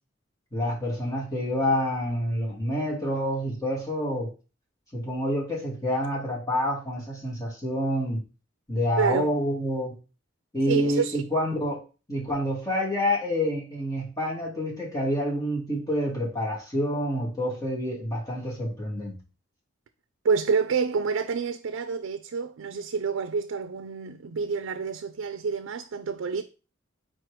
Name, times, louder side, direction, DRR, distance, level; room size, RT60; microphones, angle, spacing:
voice 1, 0.5-4.3 4.9-8.2 8.7-9.9 10.5-11.8 12.1-19.2, equal, 20° left, 2.3 m, -28 dB
voice 2, 9.0-9.3 10.7-11.2 20.2-26.4, right 5 dB, 90° right, 0.4 m, -28 dB
4.5 x 4.4 x 4.9 m
head